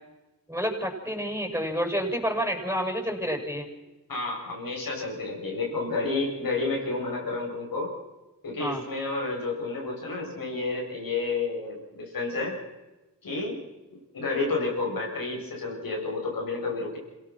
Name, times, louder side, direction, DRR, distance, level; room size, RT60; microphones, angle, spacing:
voice 1, 0.5-3.7 8.6-8.8, equal, 5° right, 4 dB, 7.1 m, -29 dB
voice 2, 4.1-7.9 8.4-12.5 13.2-13.6 13.9-17.0, left 3 dB, 75° left, -1 dB, 7.4 m, -30 dB
26.5 x 17.5 x 6.2 m, 1.1 s
cardioid pair, 45°, 35 cm